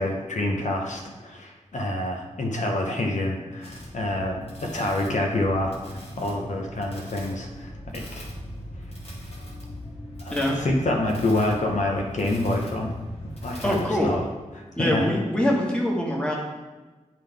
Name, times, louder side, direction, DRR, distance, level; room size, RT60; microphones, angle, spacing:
voice 1, 0.0-8.3 10.2-12.9 13.4-14.2 14.5-15.0, left 1 dB, 75° left, 1 dB, 0.9 m, -27 dB
sound 1, 3.6-14.2, equal, 55° left, 1.7 m, -40 dB
sound 2, 6.8-12.6, left 1 dB, 30° left, 1.6 m, -45 dB
voice 2, 13.6-14.1 14.8-16.4, left 1 dB, 10° left, -2 dB, 1.4 m, -24 dB
10.5 x 3.8 x 3.4 m, 1.2 s
wide cardioid pair, 105°, 12 cm